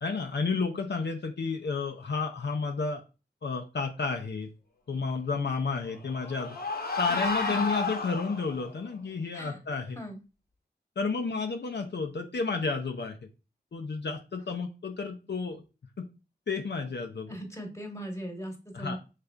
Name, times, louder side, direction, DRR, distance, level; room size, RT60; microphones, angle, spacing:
voice 1, 0.0-3.0 3.4-4.5 4.9-6.6 7.0-10.0 11.0-13.2 13.7-15.6 16.0-16.1 16.5-17.4 18.7-19.0, left 4 dB, 75° left, 4 dB, 0.5 m, -31 dB
sound 1, 5.7-8.7, left 3 dB, 55° left, 0.9 m, -32 dB
voice 2, 17.3-19.0, equal, 15° left, 2 dB, 1.3 m, -39 dB
5.1 x 3.2 x 2.3 m, 0.31 s
wide cardioid pair, 45°, 18 cm